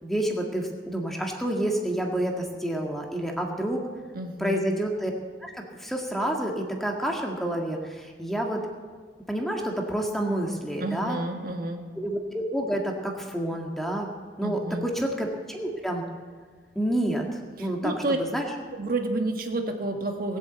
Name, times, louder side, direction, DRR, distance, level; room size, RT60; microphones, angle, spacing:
voice 1, 0.0-3.9 4.4-5.1 5.4-8.6 9.3-11.2 12.0-14.1 14.4-16.1 16.8-18.5, right 1 dB, ahead, 1 dB, 1.8 m, -29 dB
voice 2, 4.1-4.6 10.8-11.8 14.4-14.9 17.6-18.2 18.7-20.4, right 2 dB, 55° right, 4 dB, 1.6 m, -30 dB
20.0 x 8.1 x 8.1 m, 1.5 s
head